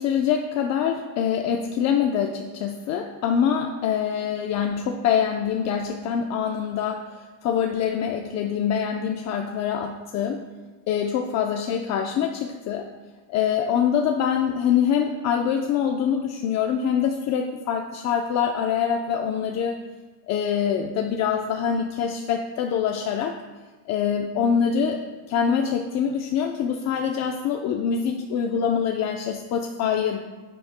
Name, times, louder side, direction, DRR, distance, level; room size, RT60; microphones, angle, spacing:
voice 1, 0.0-10.4 10.9-12.9 13.3-19.8 20.3-23.4 23.9-30.2, left 7 dB, 40° left, 2 dB, 0.6 m, -24 dB
11.5 x 9.9 x 2.2 m, 1.3 s
supercardioid pair, 135°, 39 cm